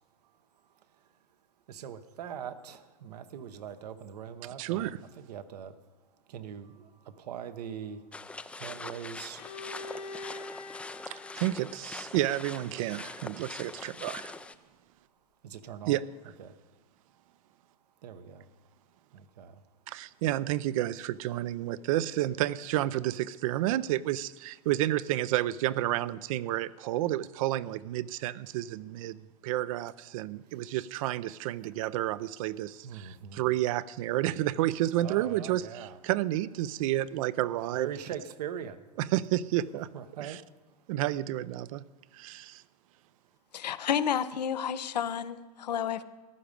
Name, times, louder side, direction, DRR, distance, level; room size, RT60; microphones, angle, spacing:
voice 1, 1.7-5.8 6.3-8.0 8.5-9.4 15.4-16.0 16.4-16.6 18.0-18.5 19.1-19.6 30.5-30.6 31.8-31.9 32.8-33.4 35.0-36.0 37.8-38.9 39.9-40.4, right 8 dB, 75° right, 10 dB, 1.1 m, -42 dB
voice 2, 4.6-5.0 11.1-14.4 15.9-16.0 19.9-29.2 29.4-37.9 39.0-39.9 40.2-40.4 40.9-41.8 42.1-42.6, right 14 dB, 55° right, 18 dB, 0.5 m, -30 dB
sound 1, 8.1-14.5, left 3 dB, 5° left, 0.4 m, -43 dB
Bowed string instrument, 9.4-13.2, left 3 dB, 70° left, 1.3 m, -45 dB
voice 3, 43.5-46.0, left 8 dB, 90° left, 12 dB, 0.8 m, -31 dB
15.0 x 11.0 x 5.2 m, 1.3 s
hypercardioid pair, 135°, 21 cm